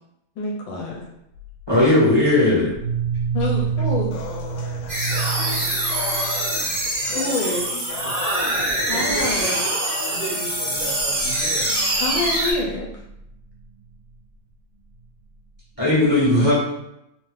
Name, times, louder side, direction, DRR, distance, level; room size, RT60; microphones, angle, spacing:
voice 1, 0.4-1.0 3.3-4.1 7.0-7.6 8.9-9.6 12.0-12.8, left 2 dB, 70° left, -1 dB, 1.5 m, -26 dB
sound 1, 1.4-1.8 2.7-7.2 7.5-7.7 8.0-8.3 8.5-8.8 9.5-9.6 10.6-13.8, right 6 dB, 85° right, 1.5 m, -30 dB
voice 2, 1.7-2.7 15.8-16.7, left 1 dB, 15° left, -8 dB, 0.9 m, -17 dB
sound 2, 4.1-12.1, left 5 dB, 85° left, 1.4 m, -36 dB
sound 3, 4.9-12.5, right 1 dB, 50° right, 0.6 m, -24 dB
voice 3, 8.8-11.7 15.8-16.0, right 3 dB, 70° right, -4 dB, 1.7 m, -34 dB
3.7 x 2.9 x 3.2 m, 0.84 s
omnidirectional pair, 2.2 m